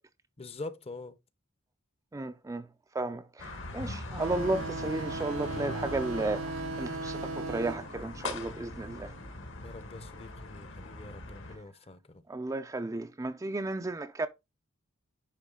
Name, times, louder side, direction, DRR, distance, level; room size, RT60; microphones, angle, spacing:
voice 1, 0.4-1.1 9.6-12.2, left 2 dB, 30° left, 0.7 m, -44 dB
voice 2, 2.1-2.7 2.9-9.1 12.3-14.3, right 2 dB, 15° right, 0.4 m, -34 dB
sound 1, 3.4-11.6, left 2 dB, 65° left, 1.4 m, -41 dB
sound 2, 4.2-9.3, right 2 dB, 85° right, 0.8 m, -38 dB
10.0 x 3.7 x 3.7 m
head